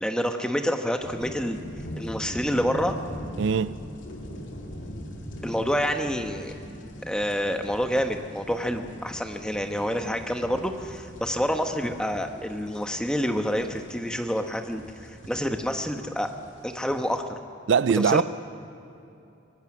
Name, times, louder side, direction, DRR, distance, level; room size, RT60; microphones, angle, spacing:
voice 1, 0.0-1.6 2.0-3.0 5.4-6.5 7.1-16.3 16.6-17.2 17.9-18.2, equal, 5° left, 1.0 m, -28 dB
sound 1, 1.0-17.2, equal, 80° left, 2.4 m, -41 dB
voice 2, 3.4-3.8 17.7-18.2, right 6 dB, 75° right, 0.4 m, -21 dB
25.0 x 18.0 x 6.2 m
head